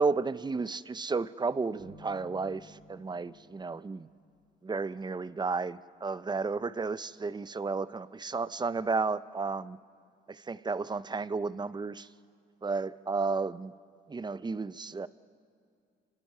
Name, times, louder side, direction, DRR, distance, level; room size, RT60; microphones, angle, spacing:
voice 1, 0.0-4.1 4.6-9.8 10.3-12.1 12.6-13.7 14.1-15.1, right 4 dB, 20° right, 16 dB, 0.6 m, -32 dB
sound 1, 1.8-5.2, left 2 dB, 90° right, 3.7 m, -56 dB
29.0 x 22.0 x 5.6 m, 2.3 s
cardioid pair, 90°, 20 cm